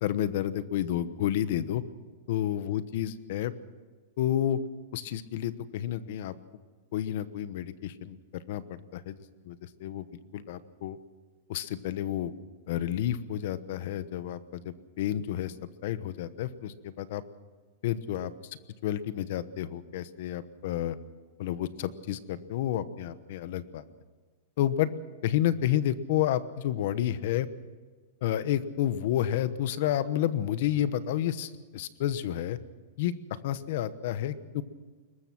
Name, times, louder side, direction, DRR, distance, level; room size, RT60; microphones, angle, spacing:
voice 1, 0.0-1.8 2.3-3.5 4.2-4.6 4.9-6.3 6.9-9.2 9.4-10.1 10.3-11.0 11.5-12.3 12.7-15.5 15.8-17.2 17.8-18.3 18.8-21.0 21.4-23.8 24.6-24.9 25.2-27.5 28.2-32.6 33.0-34.6, left 11 dB, 45° left, 14 dB, 1.0 m, -30 dB
22.0 x 20.0 x 6.0 m, 1.4 s
supercardioid pair, 180°, 0 cm